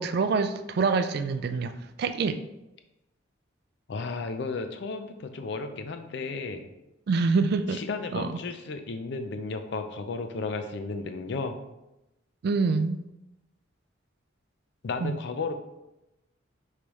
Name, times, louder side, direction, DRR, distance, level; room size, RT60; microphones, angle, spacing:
voice 1, 0.0-2.4 7.1-7.8 8.1-8.4 12.4-13.0 15.0-15.2, right 4 dB, 55° right, 10 dB, 0.3 m, -26 dB
voice 2, 3.9-6.7 7.7-11.5 14.8-15.5, left 3 dB, 60° left, 7 dB, 0.4 m, -33 dB
5.3 x 3.2 x 3.0 m, 0.94 s
head